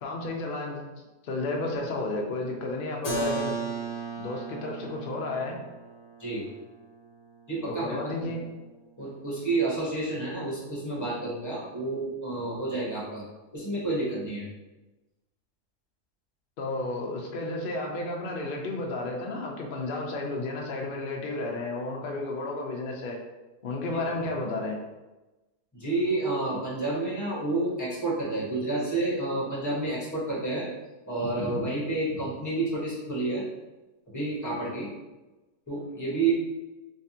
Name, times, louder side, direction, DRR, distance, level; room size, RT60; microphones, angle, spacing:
voice 1, 0.0-0.8 1.2-3.6 4.2-5.6 7.7-8.4 16.6-23.2 23.6-24.8, left 2 dB, 70° left, 0 dB, 0.5 m, -32 dB
Keyboard (musical), 3.0-8.6, right 3 dB, 35° left, 0.7 m, -36 dB
voice 2, 7.5-8.5 9.0-13.2 13.5-14.5 25.7-30.7 31.1-33.4 34.1-34.9 35.7-36.3, right 2 dB, 10° left, -7 dB, 1.1 m, -30 dB
3.3 x 3.3 x 2.8 m, 1.1 s
omnidirectional pair, 1.7 m